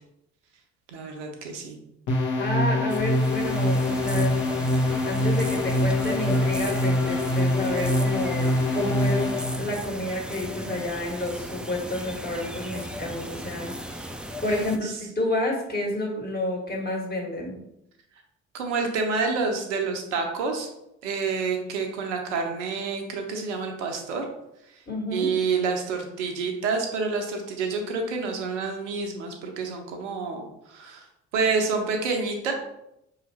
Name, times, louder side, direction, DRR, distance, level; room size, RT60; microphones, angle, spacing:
voice 1, 0.9-1.8 13.9-14.0 14.5-14.9 18.5-20.7 21.0-24.2 25.1-31.1 31.3-32.5, right 4 dB, 85° right, 3 dB, 0.6 m, -28 dB
sound 1, 2.1-9.6, left 1 dB, 55° left, 1.0 m, -24 dB
voice 2, 2.4-4.3 5.0-9.3 9.6-13.7 14.4-17.6 24.9-25.3, left 1 dB, 25° left, -1 dB, 1.5 m, -30 dB
sound 2, 2.9-14.8, equal, 5° right, 0.4 m, -36 dB
4.9 x 2.8 x 2.8 m, 0.82 s
hypercardioid pair, 45°, 35 cm